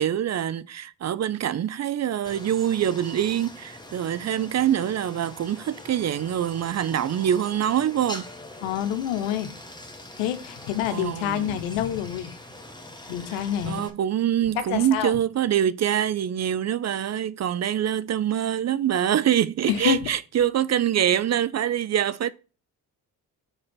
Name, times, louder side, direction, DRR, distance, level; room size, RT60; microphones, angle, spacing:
voice 1, 0.0-8.2 10.9-11.5 13.6-22.3, right 10 dB, 35° right, 0.5 m, -25 dB
Stream, 2.3-13.9, left 1 dB, 10° left, 1.4 m, -43 dB
voice 2, 8.6-9.5 10.2-12.3 13.1-13.8 14.6-15.1 19.7-20.1, left 10 dB, 80° left, 0.9 m, -27 dB
5.0 x 4.4 x 6.0 m
hypercardioid pair, 50°, 46 cm